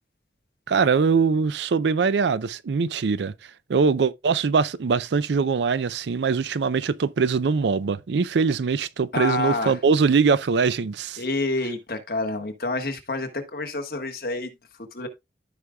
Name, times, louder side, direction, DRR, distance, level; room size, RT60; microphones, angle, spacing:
voice 1, 0.7-3.3 3.7-11.2, right 5 dB, 85° right, 0.4 m, -22 dB
voice 2, 9.1-9.8 11.2-15.1, left 2 dB, 55° left, 1.4 m, -28 dB
14.0 x 5.0 x 2.3 m
head